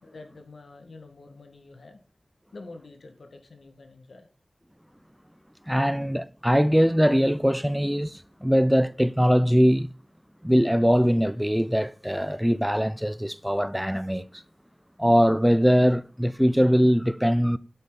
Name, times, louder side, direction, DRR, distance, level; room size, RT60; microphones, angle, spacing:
voice 1, 0.0-2.0 2.5-4.3, left 3 dB, 85° left, 2.0 m, -46 dB
voice 2, 5.7-9.9 10.4-14.4 15.0-17.6, equal, 5° right, 0.4 m, -22 dB
8.5 x 8.2 x 4.1 m
wide cardioid pair, 75°, 0 cm